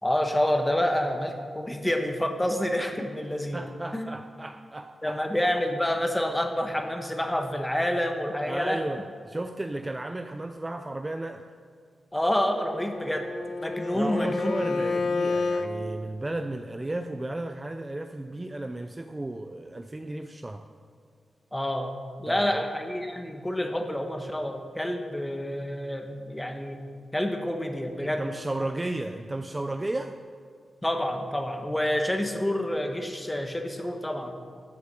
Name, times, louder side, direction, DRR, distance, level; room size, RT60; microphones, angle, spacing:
voice 1, 0.0-4.1 5.0-8.8 12.1-13.3 13.6-15.0 21.5-26.8 27.1-28.2 30.8-34.4, left 1 dB, 10° left, 4 dB, 1.3 m, -28 dB
voice 2, 3.5-5.2 8.5-11.4 13.9-20.7 22.3-22.7 28.0-30.2, right 2 dB, 20° right, 7 dB, 0.5 m, -34 dB
Bowed string instrument, 12.5-15.7, left 3 dB, 65° left, 0.9 m, -29 dB
13.0 x 7.1 x 7.5 m, 2.1 s
wide cardioid pair, 120°, 0 cm